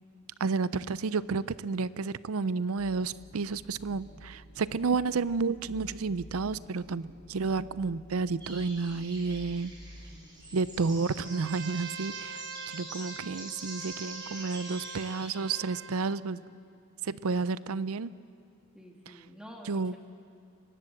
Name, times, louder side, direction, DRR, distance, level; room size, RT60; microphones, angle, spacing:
voice 1, 0.4-9.7 10.5-16.4 17.0-18.1 19.1-19.2 19.6-19.9, right 4 dB, 80° right, 17 dB, 0.5 m, -31 dB
sound 1, 2.8-11.0, equal, 35° left, 4.3 m, -51 dB
sound 2, 8.4-15.3, right 1 dB, 20° right, 6.8 m, -45 dB
Trumpet, 11.2-16.2, right 6 dB, 55° right, 0.9 m, -45 dB
voice 2, 15.9-16.5 18.7-20.0, equal, 5° right, 0 dB, 2.2 m, -50 dB
25.0 x 19.5 x 7.7 m, 2.4 s
head